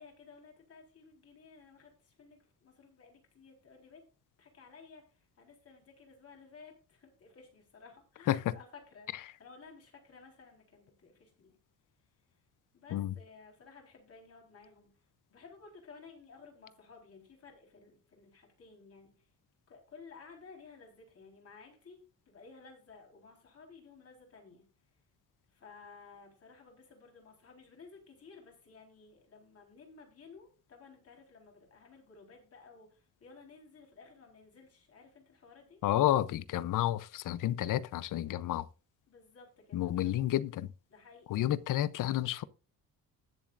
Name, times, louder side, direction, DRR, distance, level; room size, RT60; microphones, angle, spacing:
voice 1, 0.0-4.0 4.4-5.0 5.4-9.1 9.4-11.6 12.7-14.9 15.3-19.1 19.7-22.0 22.3-24.6 25.5-35.8 39.1-40.2 40.9-41.3, left 4 dB, 45° left, 4.1 m, -55 dB
voice 2, 35.8-38.7 39.7-40.7 41.3-42.4, left 13 dB, 65° left, 0.7 m, -30 dB
20.0 x 7.2 x 2.5 m
cardioid pair, 155°, 35 cm